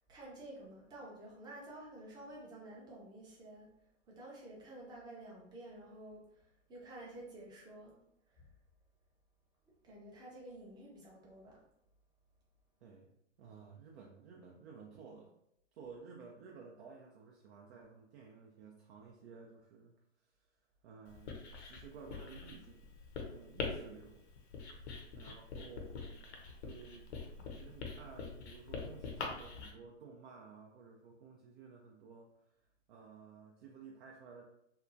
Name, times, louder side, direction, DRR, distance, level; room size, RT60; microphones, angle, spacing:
voice 1, 0.1-3.7 4.1-8.0 8.3-8.5 9.8-11.6, right 1 dB, 10° right, -4 dB, 0.6 m, -51 dB
voice 2, 12.8-15.3 15.7-24.2 24.7-27.1 27.5-34.4, right 5 dB, 55° right, -1 dB, 0.5 m, -55 dB
Writing, 21.1-29.7, left 4 dB, 60° left, 0.7 m, -44 dB
2.8 x 2.3 x 2.5 m, 0.78 s
hypercardioid pair, 125°, 37 cm